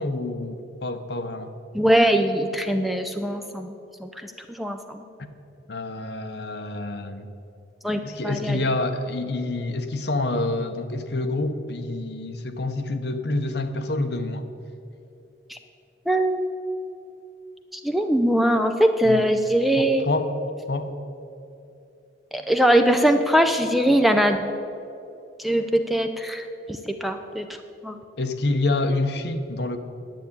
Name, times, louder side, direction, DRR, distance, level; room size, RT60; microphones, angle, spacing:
voice 1, 0.0-1.5 5.7-7.3 8.0-14.4 19.0-19.3 19.8-20.3 20.7-20.9 28.2-29.8, left 2 dB, 60° left, 8 dB, 0.9 m, -27 dB
voice 2, 1.7-3.8 4.0-5.0 7.8-8.6 15.5-15.6 16.1-16.5 17.7-20.1 22.3-24.5 25.4-27.5 27.8-28.0, right 1 dB, ahead, 6 dB, 0.5 m, -22 dB
10.5 x 8.2 x 8.7 m, 2.7 s
head